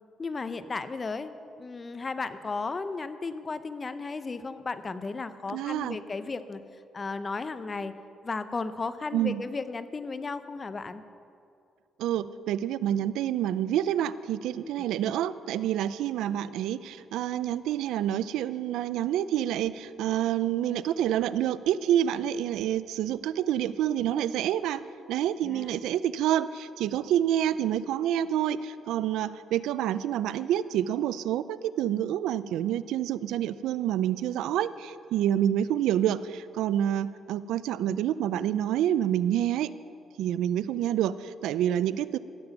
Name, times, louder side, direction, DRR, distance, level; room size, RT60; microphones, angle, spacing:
voice 1, 0.2-6.6 6.9-7.9 8.2-11.0 14.6-14.9 25.4-25.8, left 4 dB, 30° left, 12 dB, 0.7 m, -35 dB
voice 2, 5.5-6.0 9.1-9.4 12.0-24.8 25.1-39.7 40.2-42.2, right 11 dB, 90° right, 16 dB, 0.4 m, -28 dB
16.0 x 7.8 x 6.9 m, 2.5 s
cardioid pair, 90°, 0 cm